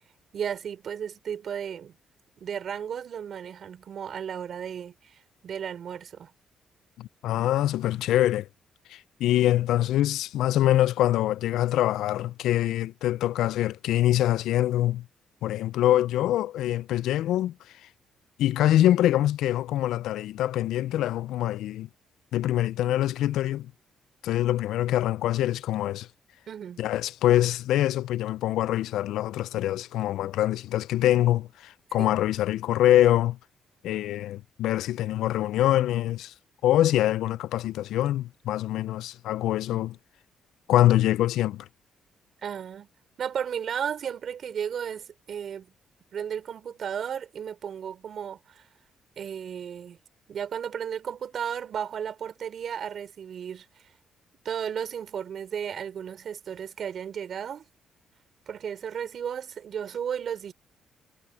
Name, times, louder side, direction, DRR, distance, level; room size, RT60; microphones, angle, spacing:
voice 1, 0.3-1.9 2.4-6.3 26.5-26.8 32.0-32.2 42.4-42.9 43.2-45.7 46.1-48.7 49.2-50.0 50.3-53.9 54.4-57.6 58.5-60.5, right 8 dB, 60° right, 4.3 m, -34 dB
voice 2, 7.0-8.5 8.9-15.1 15.4-17.5 18.4-21.9 22.3-23.7 24.2-26.1 26.8-33.4 33.8-36.3 36.6-40.0 40.7-41.7, left 13 dB, 85° left, 0.4 m, -24 dB
cardioid pair, 90°, 0 cm